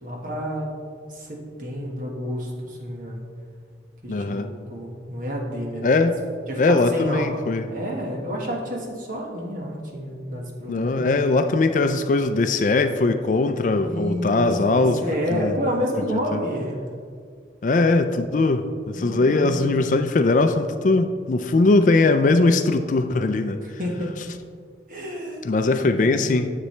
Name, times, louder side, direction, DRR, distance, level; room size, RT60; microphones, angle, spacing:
voice 1, 0.0-0.7 1.1-3.2 4.0-6.0 6.5-7.4 7.7-11.0 13.7-16.8 18.9-19.8 23.8-24.1 24.9-25.5 25.8-26.3, equal, 50° right, -1 dB, 1.5 m, -30 dB
voice 2, 4.1-4.5 5.8-6.2 6.6-7.7 10.7-15.0 15.3-15.6 16.1-16.4 17.6-23.6 25.4-26.5, left 3 dB, 45° left, 9 dB, 0.4 m, -20 dB
9.8 x 7.6 x 3.2 m, 2.1 s
head